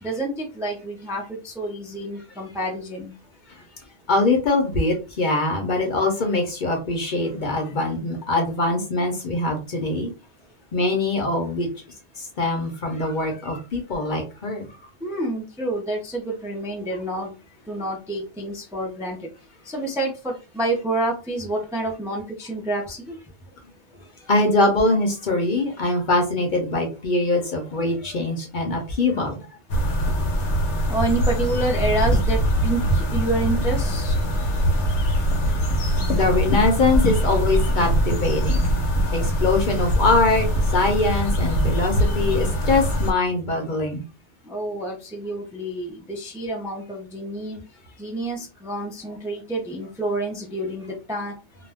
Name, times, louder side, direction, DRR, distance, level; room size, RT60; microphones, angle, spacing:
voice 1, 0.0-3.1 15.0-17.3 17.7-19.2 19.6-23.2 30.9-34.1 44.4-47.6 48.0-51.3, right 1 dB, 5° right, -1 dB, 0.4 m, -28 dB
voice 2, 4.1-10.1 10.7-11.7 12.2-14.7 24.3-29.5 36.1-38.7 39.1-44.0, left 2 dB, 50° left, 2 dB, 0.8 m, -23 dB
sound 1, 29.7-43.1, equal, 90° left, 1.0 m, -22 dB
2.4 x 2.1 x 3.4 m, 0.31 s
omnidirectional pair, 1.1 m